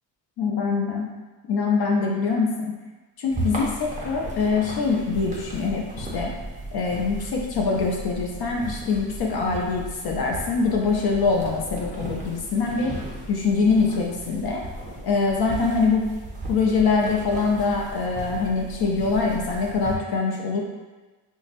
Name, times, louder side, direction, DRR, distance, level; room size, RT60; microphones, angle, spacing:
voice 1, 0.4-1.1 1.5-2.7 3.2-6.3 6.7-12.9 13.3-14.6 15.0-16.1 16.5-20.6, left 4 dB, 60° left, -1 dB, 0.6 m, -24 dB
sound 1, 3.3-19.9, right 1 dB, 20° right, 0.5 m, -36 dB
5.6 x 2.1 x 2.5 m, 1.2 s
cardioid pair, 170°, 42 cm